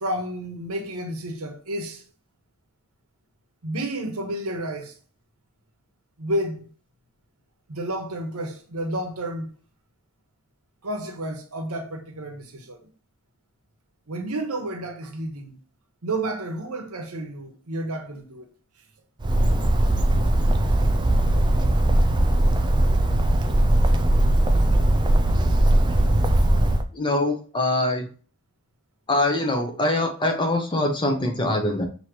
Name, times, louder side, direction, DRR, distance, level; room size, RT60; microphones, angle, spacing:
voice 1, 0.0-2.0 3.6-4.9 6.2-6.7 7.7-9.5 10.8-12.9 14.1-15.6 16.0-18.5, right 1 dB, 80° right, 1.0 m, -31 dB
Bird, 19.2-26.8, right 1 dB, 20° right, 0.3 m, -19 dB
voice 2, 26.9-28.1 29.1-31.9, left 1 dB, 20° left, 0.7 m, -23 dB
6.2 x 2.8 x 3.0 m
head